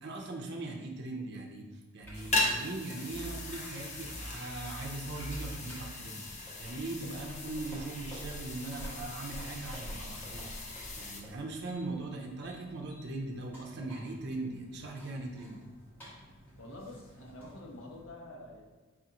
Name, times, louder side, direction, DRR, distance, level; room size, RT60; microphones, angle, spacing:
voice 1, 0.0-1.7 1.9-6.2 6.6-15.6, right 2 dB, 50° right, 1 dB, 0.6 m, -40 dB
sound 1, 2.0-18.0, equal, 10° left, 1.4 m, -48 dB
sound 2, 2.1-11.2, left 2 dB, 35° left, 0.5 m, -38 dB
voice 2, 16.6-18.6, left 1 dB, 75° left, 0 dB, 0.9 m, -47 dB
4.9 x 3.6 x 2.9 m, 1.3 s
head